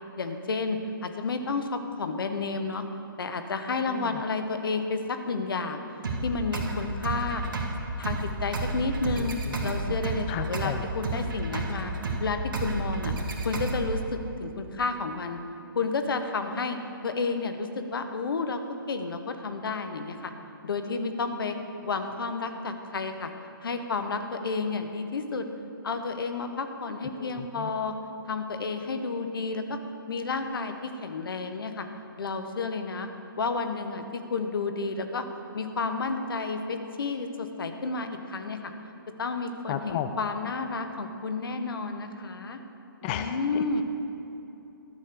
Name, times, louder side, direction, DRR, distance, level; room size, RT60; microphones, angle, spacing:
voice 1, 0.2-2.8 3.2-5.8 6.2-7.4 8.0-9.4 9.6-11.9 12.2-13.1 13.4-15.4 15.7-16.8 17.0-18.6 18.9-20.3 20.6-21.5 21.8-23.3 23.6-25.5 25.8-27.9 28.3-29.8 30.1-31.9 32.2-33.1 33.4-35.2 35.5-38.7 39.2-42.6 43.0-43.8, left 4 dB, 70° left, 7 dB, 1.1 m, -31 dB
voice 2, 3.9-4.2 9.2-9.6 9.9-10.0 10.3-10.8 27.1-27.7 39.7-40.1 43.0-43.8, left 11 dB, 25° left, 9 dB, 0.3 m, -34 dB
sound 1, 6.0-14.0, right 2 dB, 65° right, 1.7 m, -31 dB
12.0 x 6.6 x 6.7 m, 2.9 s
hypercardioid pair, 140°, 12 cm